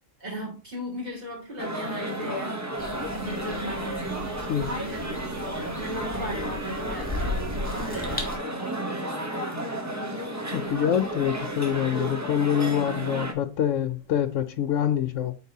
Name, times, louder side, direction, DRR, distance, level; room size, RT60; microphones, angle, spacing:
voice 1, 0.2-2.8 3.2-4.3 4.6-5.2 5.7-8.3 8.6-9.6, right 1 dB, 30° right, 2.5 m, -37 dB
sound 1, 1.6-13.3, right 1 dB, 15° right, 0.7 m, -32 dB
sound 2, 2.8-8.4, left 2 dB, 5° left, 1.7 m, -36 dB
voice 2, 10.5-15.3, left 9 dB, 75° left, 0.9 m, -25 dB
8.0 x 4.6 x 2.8 m
omnidirectional pair, 1.4 m